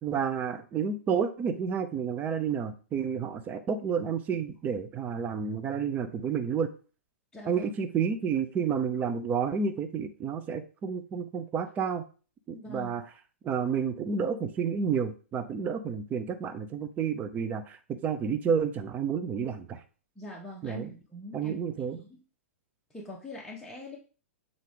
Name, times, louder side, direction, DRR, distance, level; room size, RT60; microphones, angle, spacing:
voice 1, 0.0-6.7 7.5-12.0 12.5-13.0 13.4-19.8 20.6-20.9 21.3-22.0, right 6 dB, 25° right, 8 dB, 0.7 m, -30 dB
voice 2, 7.3-7.7 12.5-13.0 20.2-21.6 22.0-22.2 22.9-24.0, left 1 dB, 5° left, -4 dB, 1.3 m, -43 dB
7.4 x 3.8 x 3.8 m, 0.37 s
figure-of-eight pair, 110°, 7 cm